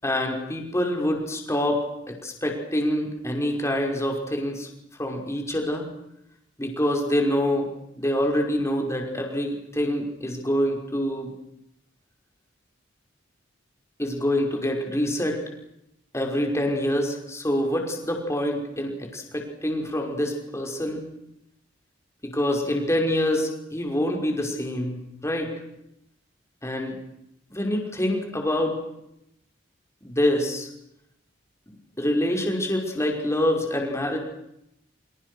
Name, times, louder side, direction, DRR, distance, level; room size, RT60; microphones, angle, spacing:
voice 1, 0.0-4.7 5.0-5.9 6.6-7.7 7.9-11.3 14.0-15.4 16.1-21.0 22.2-25.5 26.6-27.0 27.5-28.8 30.0-30.7 32.0-34.2, left 1 dB, 15° left, 2 dB, 5.6 m, -26 dB
30.0 x 27.0 x 6.5 m, 0.81 s
head